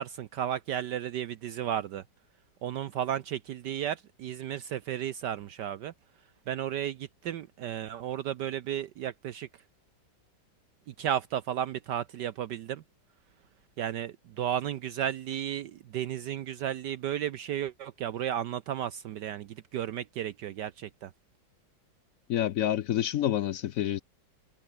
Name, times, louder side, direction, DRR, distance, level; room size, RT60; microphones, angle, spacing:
voice 1, 0.0-2.0 2.6-5.9 6.5-9.5 11.0-12.8 13.8-21.1, right 10 dB, 65° right, 1.3 m, -33 dB
voice 2, 22.3-24.0, left 11 dB, 75° left, 0.7 m, -28 dB
omnidirectional pair, 2.1 m